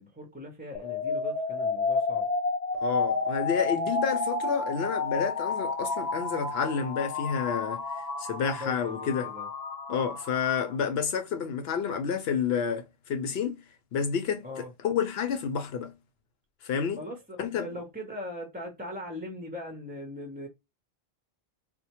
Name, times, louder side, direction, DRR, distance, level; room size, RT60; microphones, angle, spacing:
voice 1, 0.0-2.3 8.6-9.5 14.4-14.7 17.0-20.5, left 1 dB, 10° right, 0.6 m, -40 dB
sound 1, 0.7-10.7, left 3 dB, 45° left, 0.8 m, -31 dB
voice 2, 2.8-9.3 9.9-13.6 13.9-15.9 16.6-17.0 17.4-17.7, left 6 dB, 80° left, 0.8 m, -30 dB
4.3 x 2.1 x 2.8 m
omnidirectional pair, 1.0 m